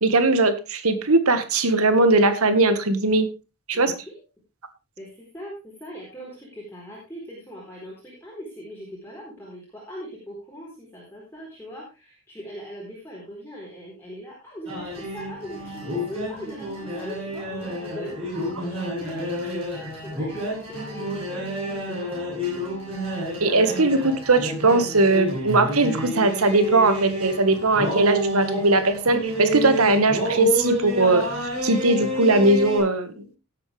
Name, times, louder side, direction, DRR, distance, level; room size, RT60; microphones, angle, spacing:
voice 1, 0.0-3.3 3.7-3.9 23.4-31.3 31.6-33.2, right 2 dB, 85° right, 10 dB, 1.7 m, -20 dB
voice 2, 3.7-4.2 5.0-22.1, equal, 10° left, -5 dB, 4.2 m, -40 dB
sound 1, 14.7-32.8, equal, 25° right, 7.8 m, -29 dB
17.0 x 8.3 x 3.4 m, 0.29 s
head